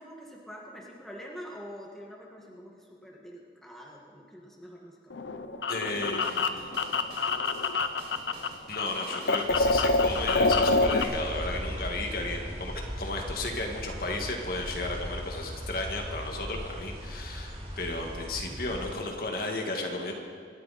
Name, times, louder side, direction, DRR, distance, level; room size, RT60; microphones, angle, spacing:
voice 1, 0.0-5.1, equal, ahead, -3 dB, 1.8 m, -45 dB
sound 1, 5.1-8.5 8.7-11.0, left 3 dB, 80° left, 0.9 m, -26 dB
voice 2, 5.7-6.8 8.7-12.7 13.0-20.1, left 2 dB, 55° left, 1 dB, 2.0 m, -34 dB
sound 2, 5.9-11.5, right 2 dB, 70° right, 4.5 m, -50 dB
sound 3, 9.5-18.9, equal, 35° right, 4.4 m, -38 dB
26.5 x 12.0 x 4.3 m, 2.2 s
head